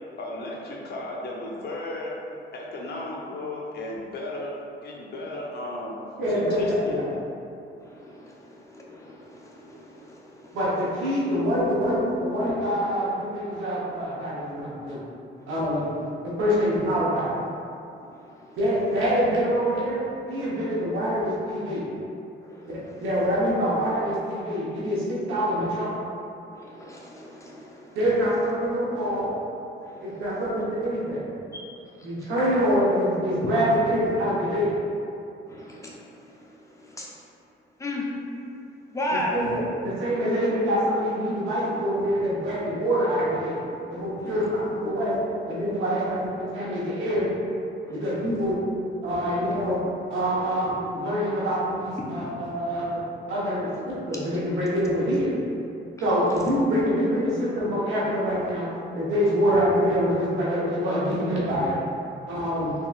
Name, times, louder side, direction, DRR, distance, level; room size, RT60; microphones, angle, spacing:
voice 1, 0.2-2.1 2.5-6.0 6.3-7.0, left 1 dB, 55° left, -2 dB, 0.6 m, -35 dB
voice 2, 6.2-7.0 10.5-15.0 15.5-15.8 16.4-17.3 18.6-20.0 20.3-21.8 22.6-22.7 23.0-25.9 27.9-29.3 30.0-31.2 32.0-34.7 39.1-43.6 43.9-45.2 45.5-47.3 47.9-48.5 49.0-49.8 50.1-53.0 53.3-55.3 56.0-58.7 58.9-61.8 62.3-62.7, equal, 90° right, -7 dB, 1.0 m, -25 dB
voice 3, 7.8-10.6 18.0-18.6 22.4-23.0 25.6-25.7 26.5-28.0 29.8-30.4 32.2-32.3 33.4-33.5 35.5-36.3 36.8-37.1 37.8-38.1 38.9-39.4 44.2-44.5 47.9-48.0, left 1 dB, 15° left, -4 dB, 0.6 m, -36 dB
3.5 x 2.8 x 2.4 m, 2.7 s
cardioid pair, 90°, 20 cm